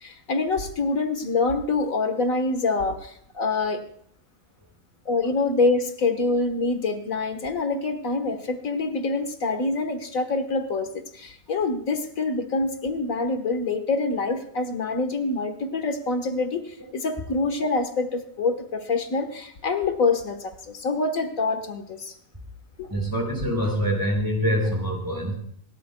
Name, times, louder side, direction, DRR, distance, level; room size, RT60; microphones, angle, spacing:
voice 1, 0.0-3.8 5.1-22.1 22.8-22.9, left 3 dB, 90° left, 7 dB, 1.9 m, -26 dB
voice 2, 22.9-25.3, equal, 15° right, 0 dB, 5.0 m, -25 dB
27.0 x 13.0 x 2.3 m, 0.64 s
omnidirectional pair, 1.4 m